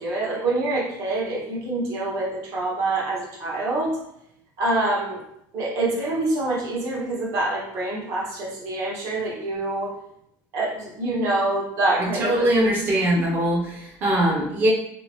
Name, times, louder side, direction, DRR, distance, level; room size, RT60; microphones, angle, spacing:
voice 1, 0.0-4.0 4.6-5.2 5.5-9.9 10.5-12.5, right 2 dB, 45° right, -4 dB, 0.9 m, -26 dB
voice 2, 12.2-14.7, right 1 dB, 25° right, -3 dB, 0.6 m, -21 dB
2.7 x 2.6 x 3.0 m, 0.77 s
cardioid pair, 175°, 7 cm